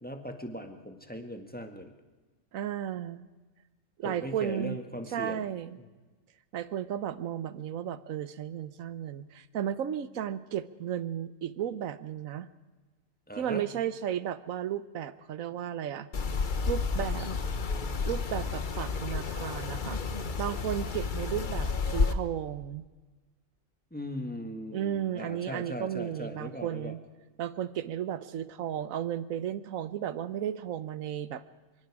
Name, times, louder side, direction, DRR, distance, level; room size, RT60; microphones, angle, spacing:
voice 1, 0.0-1.9 4.0-5.5 5.8-5.9 13.3-13.6 23.9-27.0, equal, 5° left, 5 dB, 1.6 m, -39 dB
voice 2, 2.5-3.2 4.0-4.8 5.1-5.8 6.5-12.5 13.4-16.1 16.7-17.3 18.0-20.0 20.4-22.8 24.7-27.0 27.4-31.4, right 10 dB, 70° right, 14 dB, 1.3 m, -34 dB
sound 1, 16.1-22.1, left 4 dB, 40° left, 1.1 m, -31 dB
25.0 x 24.0 x 4.9 m, 1.3 s
omnidirectional pair, 1.5 m